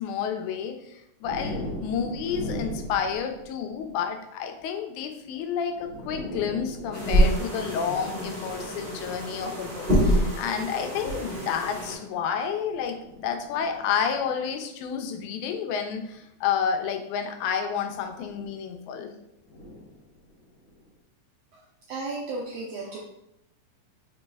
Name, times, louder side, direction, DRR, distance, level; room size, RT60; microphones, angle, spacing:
voice 1, 0.0-13.0 13.2-19.1, left 7 dB, 80° left, 5 dB, 2.0 m, -30 dB
sound 1, 1.2-4.0 5.3-5.4 5.7-9.3 10.1-10.4 11.6-14.5 16.0-16.2 17.9-18.6 19.4-20.8, left 1 dB, 65° left, 1.8 m, -40 dB
sound 2, 6.9-11.9, equal, 40° right, 0.7 m, -26 dB
voice 2, 21.9-23.0, right 3 dB, 80° right, -3 dB, 1.5 m, -34 dB
4.5 x 4.1 x 2.3 m, 0.81 s
omnidirectional pair, 3.5 m